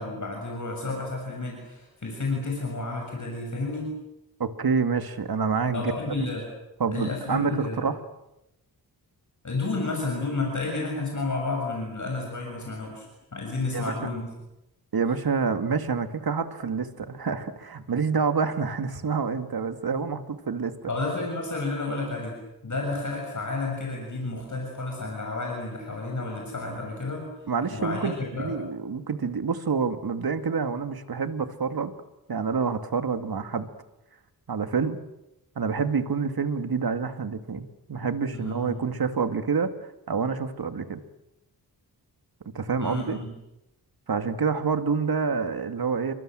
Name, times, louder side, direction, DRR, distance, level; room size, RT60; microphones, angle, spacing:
voice 1, 0.0-3.9 5.7-6.5 6.9-7.8 9.4-14.3 20.9-22.4 22.6-27.3 27.7-28.5 38.3-38.8 42.8-43.3, left 3 dB, 50° left, 0 dB, 7.1 m, -31 dB
voice 2, 4.4-5.9 6.8-8.0 13.7-13.9 14.9-20.9 27.5-31.9 32.3-33.7 34.5-35.0 35.6-39.7 40.1-41.0 42.5-43.2 44.1-46.1, right 5 dB, 65° right, 8 dB, 2.3 m, -27 dB
29.5 x 24.0 x 7.7 m, 0.90 s
wide cardioid pair, 120°, 39 cm